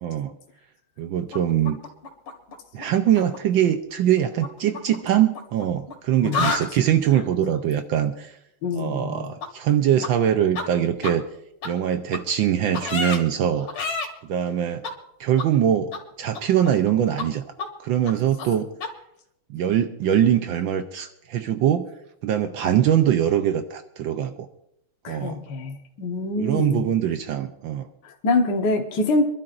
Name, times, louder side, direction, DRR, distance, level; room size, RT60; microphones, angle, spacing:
voice 1, 0.0-0.4 1.0-1.8 2.7-8.3 8.8-11.2 11.6-13.7 14.2-14.8 15.2-15.9 16.2-17.4 17.8-18.7 19.5-21.9 22.2-24.5 25.1-25.4 26.4-27.9, right 10 dB, 70° right, 8 dB, 1.3 m, -22 dB
sound 1, 1.3-2.9 3.1-3.4 4.4-5.9 6.2-6.7 9.4-9.5 10.0-10.1 10.6-10.7 11.0-11.1 11.6-11.7 12.1-12.2 12.7-13.2 13.7-14.1 14.8-14.9 15.4-15.5 15.9-16.0 16.3-16.9 17.2-17.3 17.6-17.7 18.0-18.1 18.4-18.5 18.8-18.9, left 4 dB, 70° left, 2.6 m, -29 dB
voice 2, 8.6-9.3 25.0-26.9 28.0-29.2, left 2 dB, 55° left, 2 dB, 1.7 m, -25 dB
26.5 x 12.0 x 2.6 m, 0.77 s
omnidirectional pair, 2.4 m